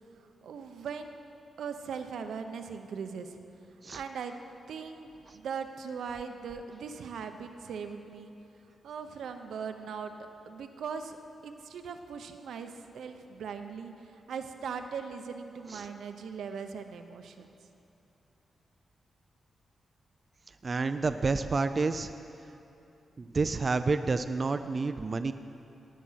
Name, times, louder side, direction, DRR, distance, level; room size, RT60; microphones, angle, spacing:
voice 1, 0.4-1.1 1.6-3.4 3.9-4.3 4.7-8.3 8.8-10.1 10.5-11.2 11.4-17.5, right 6 dB, 90° right, 6 dB, 0.8 m, -39 dB
voice 2, 20.6-22.1 23.2-25.3, right 4 dB, 35° right, 9 dB, 0.3 m, -29 dB
18.0 x 7.5 x 5.7 m, 2.8 s
wide cardioid pair, 125°, 0 cm